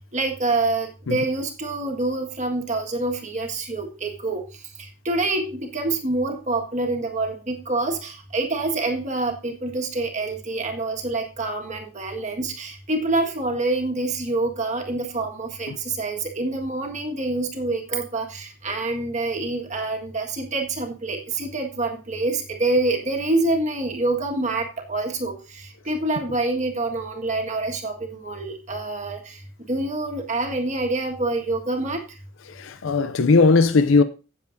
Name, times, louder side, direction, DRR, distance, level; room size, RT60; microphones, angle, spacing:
voice 1, 0.1-4.4 5.0-29.4 29.7-32.0, right 2 dB, 35° right, 1.7 m, -26 dB
voice 2, 32.6-34.0, left 4 dB, 75° left, 0.5 m, -18 dB
16.0 x 7.3 x 2.6 m
head